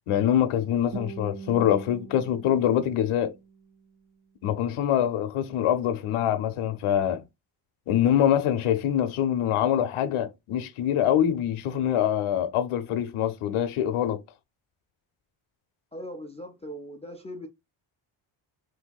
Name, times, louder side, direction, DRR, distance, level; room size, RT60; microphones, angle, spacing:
voice 1, 0.1-3.3 4.4-7.2 7.9-14.2, left 10 dB, 85° left, 0.7 m, -24 dB
Guitar, 0.9-3.9, right 5 dB, 40° right, 0.7 m, -42 dB
voice 2, 15.9-17.5, equal, 15° left, 0.3 m, -39 dB
3.4 x 2.6 x 2.2 m
cardioid pair, 120°, 50 cm